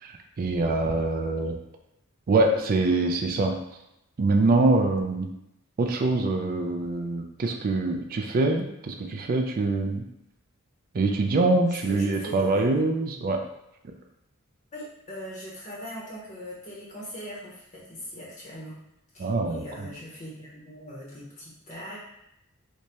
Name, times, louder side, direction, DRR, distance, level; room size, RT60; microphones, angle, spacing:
voice 1, 0.0-1.6 2.3-3.6 4.2-5.3 5.8-10.1 10.9-13.4 19.2-19.9, right 2 dB, 45° right, 4 dB, 0.4 m, -24 dB
voice 2, 11.7-12.9 14.7-18.7 19.1-22.0, equal, 35° left, -5 dB, 0.8 m, -41 dB
3.3 x 3.0 x 2.8 m, 0.84 s
head